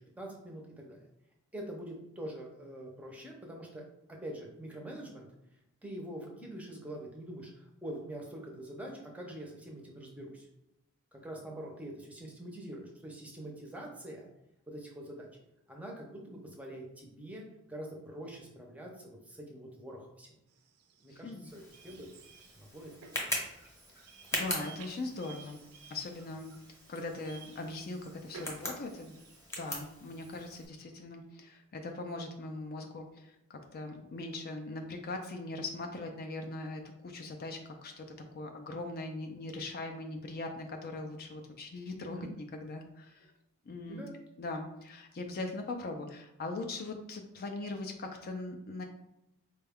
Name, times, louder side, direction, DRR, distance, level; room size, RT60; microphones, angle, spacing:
voice 1, 0.2-1.0 1.5-3.8 4.2-5.3 5.8-10.5 11.1-14.3 14.7-15.3 15.7-20.3 21.0-22.1 22.5-23.7 42.1-42.3 43.9-44.1, right 1 dB, 5° right, -1 dB, 0.6 m, -45 dB
sound 1, 20.5-29.8, right 5 dB, 90° right, 0.5 m, -55 dB
voice 2, 21.1-21.5 24.3-25.6 25.9-26.5 26.9-29.1 29.6-38.1 38.3-43.3 43.7-44.0 44.4-48.8, left 2 dB, 45° left, 4 dB, 0.4 m, -40 dB
Tick, 21.5-30.7, left 1 dB, 10° left, 0.9 m, -42 dB
4.3 x 2.3 x 3.4 m, 0.86 s
head